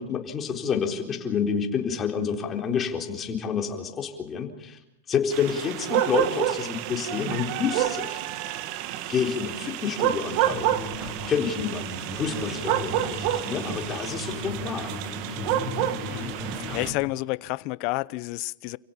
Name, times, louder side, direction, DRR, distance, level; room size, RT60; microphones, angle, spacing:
voice 1, 0.0-4.8 5.1-8.2 9.1-10.7 11.3-14.9, left 7 dB, 20° left, 4.1 m, -29 dB
sound 1, 5.3-16.9, right 12 dB, 45° right, 1.8 m, -29 dB
sound 2, 10.5-17.0, left 2 dB, ahead, 7.8 m, -36 dB
voice 2, 16.7-18.8, left 22 dB, 45° left, 0.8 m, -30 dB
29.5 x 17.0 x 7.1 m
supercardioid pair, 150°, 0 cm